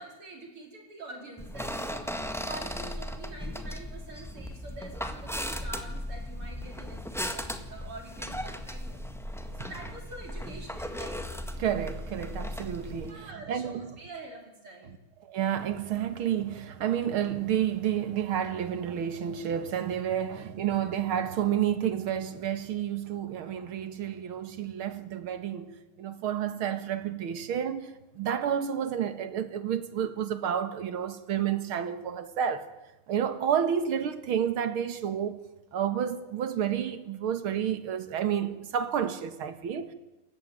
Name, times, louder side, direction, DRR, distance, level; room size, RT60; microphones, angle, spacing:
voice 1, 0.0-2.1 2.4-9.1 9.5-11.3 13.0-15.0, right 2 dB, 90° right, 5.6 m, -45 dB
sound 1, 1.4-13.1, equal, ahead, 1.3 m, -37 dB
voice 2, 11.6-13.9 15.2-32.7 33.1-35.4 35.7-39.9, right 9 dB, 75° right, 2.4 m, -30 dB
28.0 x 15.0 x 9.1 m
omnidirectional pair, 2.4 m